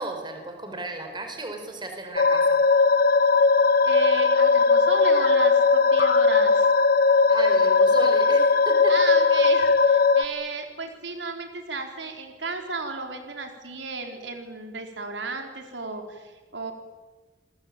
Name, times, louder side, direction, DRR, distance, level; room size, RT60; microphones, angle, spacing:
voice 1, 0.0-2.6 7.3-9.0, right 2 dB, 25° right, 5 dB, 4.7 m, -34 dB
sound 1, 2.2-10.2, left 4 dB, 55° left, 1.2 m, -19 dB
voice 2, 3.8-6.7 8.9-16.7, right 3 dB, 85° right, 4 dB, 4.3 m, -34 dB
29.0 x 21.0 x 8.9 m, 1.2 s
head